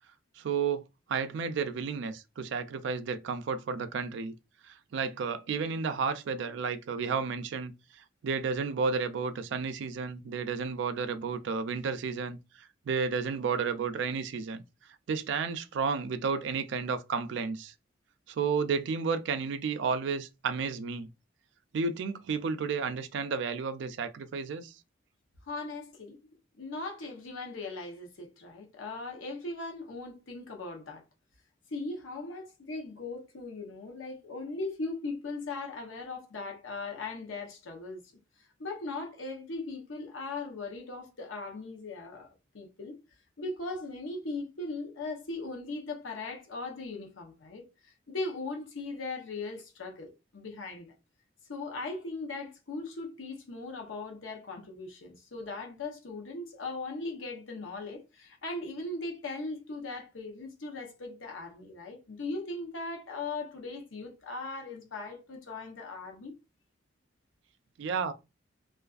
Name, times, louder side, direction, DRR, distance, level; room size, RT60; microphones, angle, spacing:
voice 1, 0.4-0.8 1.1-4.3 4.6-7.7 8.2-12.4 12.9-14.6 15.1-17.7 18.3-21.1 21.7-24.7 67.8-68.1, right 5 dB, 65° right, 0.3 m, -32 dB
voice 2, 25.5-26.3 26.6-31.0 31.7-38.0 38.6-42.3 42.5-43.0 43.4-50.9 51.5-66.3, left 3 dB, 90° left, 0.8 m, -39 dB
2.4 x 2.3 x 2.3 m
head